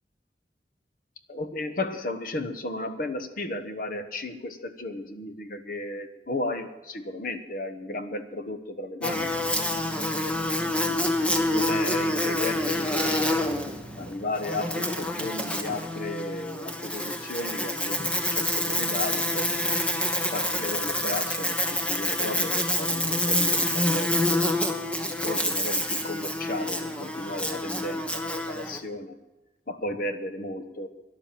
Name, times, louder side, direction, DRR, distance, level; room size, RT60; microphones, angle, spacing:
voice 1, 1.3-9.3 9.6-9.7 10.6-13.5 14.0-19.7 20.3-24.6 25.2-29.2 29.7-30.9, left 2 dB, 50° left, 10 dB, 1.2 m, -34 dB
Buzz, 9.0-28.8, left 1 dB, 5° left, 1.2 m, -27 dB
12.5 x 11.0 x 7.5 m, 1.1 s
head